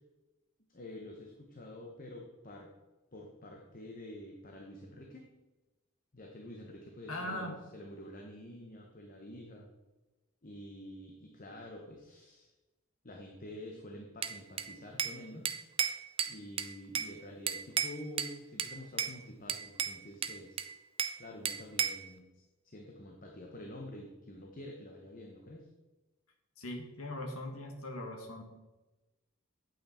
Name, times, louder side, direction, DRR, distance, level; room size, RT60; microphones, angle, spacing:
voice 1, 0.7-2.7 3.1-5.3 6.1-9.7 10.4-12.5 13.0-15.5 16.3-20.7 21.2-25.7, left 1 dB, 40° left, 1 dB, 1.0 m, -48 dB
voice 2, 7.1-7.6 26.6-28.4, left 1 dB, 75° left, 3 dB, 1.8 m, -40 dB
Bell / Glass, 14.2-15.2 15.5-17.1 17.5-18.3 18.6-19.2 19.5-21.2 21.5-22.1, right 7 dB, 25° right, 0.4 m, -34 dB
8.9 x 8.6 x 4.3 m, 1.1 s
head